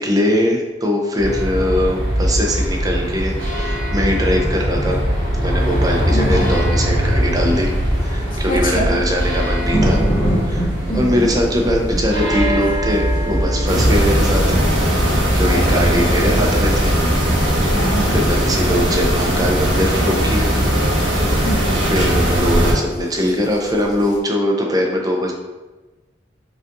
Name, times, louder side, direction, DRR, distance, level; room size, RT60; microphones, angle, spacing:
voice 1, 0.0-5.0 5.4-7.7 8.0-10.0 10.5-14.4 15.3-16.9 18.1-20.4 21.9-25.3, equal, 20° right, 0 dB, 0.5 m, -21 dB
sound 1, 1.2-14.0, equal, 65° right, 1.2 m, -21 dB
voice 2, 6.1-6.5 8.3-9.0 10.9-11.3 15.5-16.3 17.4-18.2 21.4-21.9, equal, 50° left, -2 dB, 0.8 m, -26 dB
sound 2, 7.1-24.2, equal, 15° left, 0.8 m, -29 dB
sound 3, 13.7-22.7, equal, 85° right, 1.2 m, -17 dB
5.2 x 2.4 x 2.5 m, 1.1 s
head